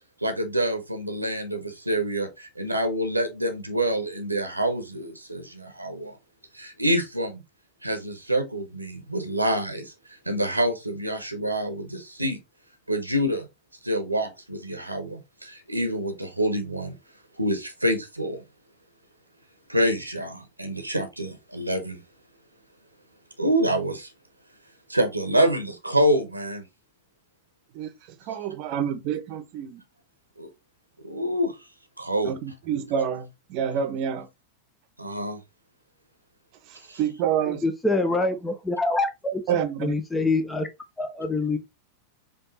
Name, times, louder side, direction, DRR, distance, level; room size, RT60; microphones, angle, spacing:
voice 1, 0.2-6.2 6.5-7.4 7.8-9.9 10.3-12.4 12.9-13.5 13.8-16.9 17.4-18.4 19.7-22.0 23.4-24.1 24.9-26.6 30.4-30.5 31.0-31.5 32.0-32.4 35.0-35.4 36.9-37.0, right 1 dB, 85° right, 0.9 m, -26 dB
voice 2, 28.3-29.8 32.2-34.3 36.7-37.6 39.5-39.9, right 8 dB, 45° right, 0.8 m, -28 dB
voice 3, 37.5-40.7 41.0-41.6, left 2 dB, 10° left, 0.6 m, -26 dB
5.2 x 2.6 x 3.9 m
figure-of-eight pair, 90°, 0 cm